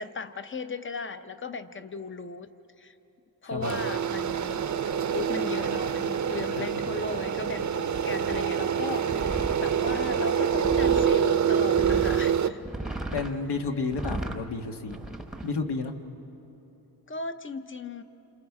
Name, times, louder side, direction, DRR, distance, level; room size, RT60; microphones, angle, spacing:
voice 1, 0.0-2.5 2.8-2.9 3.4-4.7 5.0-12.6 17.1-18.0, left 4 dB, 30° left, 10 dB, 0.7 m, -37 dB
voice 2, 3.4-3.8 6.6-6.9 13.1-15.0 15.4-15.9, left 4 dB, 80° left, 4 dB, 1.5 m, -31 dB
sound 1, 3.6-12.5, right 8 dB, 45° right, 0.6 m, -26 dB
sound 2, 7.9-8.0 8.3-8.4 9.1-11.1 11.8-12.2 12.6-13.3 13.9-14.4 14.9-15.5, right 2 dB, ahead, 0.9 m, -35 dB
28.5 x 27.0 x 4.8 m, 3.0 s
wide cardioid pair, 170°, 40 cm